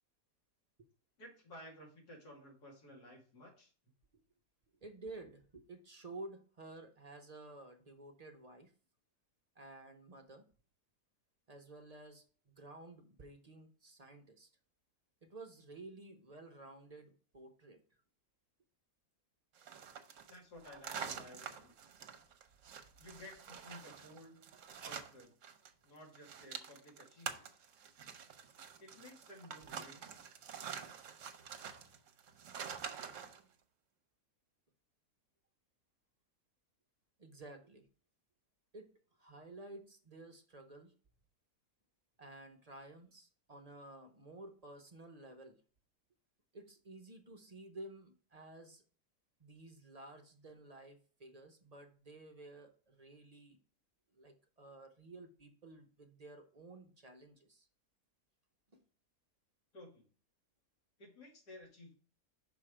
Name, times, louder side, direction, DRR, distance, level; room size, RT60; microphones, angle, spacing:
voice 1, 1.2-3.7 20.3-21.8 23.0-24.5 24.8-25.4 25.8-27.5 28.8-30.1 59.7-60.1 61.0-61.9, left 1 dB, 90° left, -1 dB, 2.8 m, -55 dB
voice 2, 4.8-8.7 9.6-10.4 11.5-14.5 15.2-17.8 37.2-37.9 38.7-38.9 39.2-40.9 42.2-45.6 46.5-48.8 49.4-53.6 54.1-57.7 58.7-58.8, right 2 dB, 40° right, 4 dB, 0.6 m, -53 dB
sound 1, 19.6-25.7 26.0-33.4, right 7 dB, 60° right, 1.0 m, -47 dB
5.9 x 4.4 x 4.9 m, 0.41 s
omnidirectional pair, 1.7 m